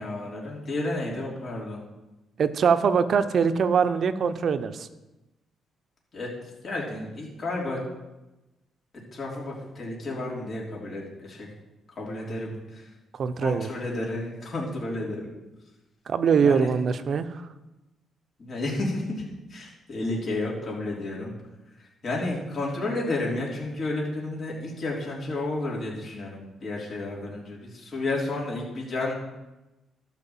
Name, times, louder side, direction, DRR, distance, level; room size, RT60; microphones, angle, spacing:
voice 1, 0.0-1.8 6.1-6.3 6.6-7.8 9.1-11.5 11.9-12.8 13.4-15.3 16.4-16.7 18.4-19.2 19.5-21.3 22.0-29.1, left 2 dB, 50° left, -4 dB, 3.4 m, -31 dB
voice 2, 2.4-4.9 13.2-13.7 16.1-17.3, right 6 dB, 55° right, 11 dB, 0.7 m, -23 dB
12.5 x 4.8 x 7.2 m, 1.0 s
cardioid pair, 90°, 0 cm